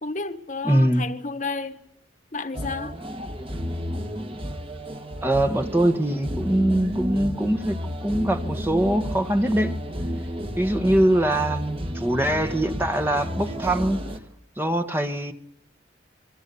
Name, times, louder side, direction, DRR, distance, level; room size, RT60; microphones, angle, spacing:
voice 1, 0.0-1.8 2.3-3.0, left 3 dB, 40° left, 1.4 m, -31 dB
voice 2, 0.6-1.1 5.2-9.8 10.6-14.0 14.6-15.3, right 1 dB, 10° right, 1.1 m, -22 dB
sound 1, 2.5-14.2, equal, 30° right, 1.7 m, -32 dB
28.0 x 23.5 x 6.9 m
head